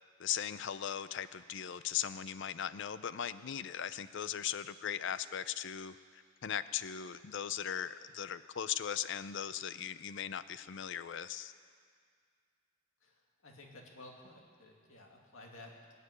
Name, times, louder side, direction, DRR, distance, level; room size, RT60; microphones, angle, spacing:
voice 1, 0.2-11.5, left 9 dB, 60° left, 14 dB, 0.5 m, -38 dB
voice 2, 13.4-15.9, left 2 dB, 80° left, 0 dB, 2.4 m, -53 dB
19.5 x 6.8 x 9.7 m, 2.1 s
head